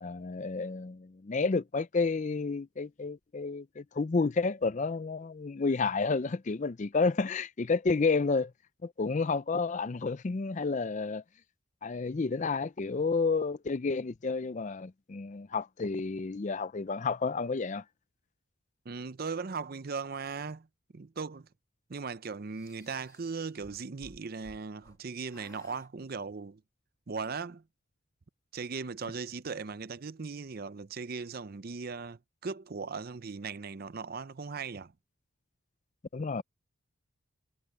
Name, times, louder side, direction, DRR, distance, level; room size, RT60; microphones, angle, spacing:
voice 1, 0.0-8.5 8.8-11.2 11.8-17.8 36.1-36.4, left 4 dB, 35° left, 0.4 m, -30 dB
voice 2, 18.9-20.7 20.9-21.5 21.9-26.6 27.1-27.6 28.5-34.9, right 4 dB, 45° right, 0.6 m, -38 dB
sound 1, 22.5-25.0 25.3-25.9, left 1 dB, 15° left, 2.3 m, -56 dB
head